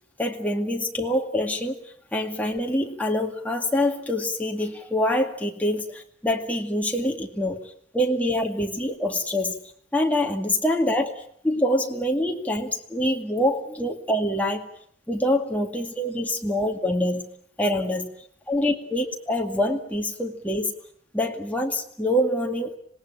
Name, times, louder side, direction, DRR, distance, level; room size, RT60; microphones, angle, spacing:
voice 1, 0.2-1.8 2.1-9.6 9.9-14.7 15.1-17.3 17.6-18.1 18.5-20.7 21.1-22.8, left 1 dB, 10° left, 1 dB, 2.3 m, -25 dB
26.5 x 18.5 x 8.8 m, 0.64 s
head